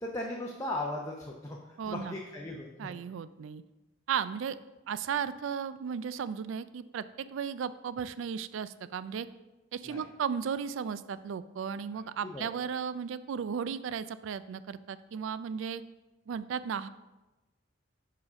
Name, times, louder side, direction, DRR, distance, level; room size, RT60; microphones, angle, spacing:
voice 1, 0.0-1.6 1.9-2.9 9.8-10.0 12.2-12.4, left 1 dB, 15° left, -2 dB, 0.6 m, -37 dB
voice 2, 1.8-2.2 2.8-3.6 4.1-4.6 4.9-9.3 9.7-15.8 16.3-16.9, right 7 dB, 75° right, 15 dB, 0.3 m, -35 dB
4.9 x 4.8 x 5.7 m, 1.1 s
head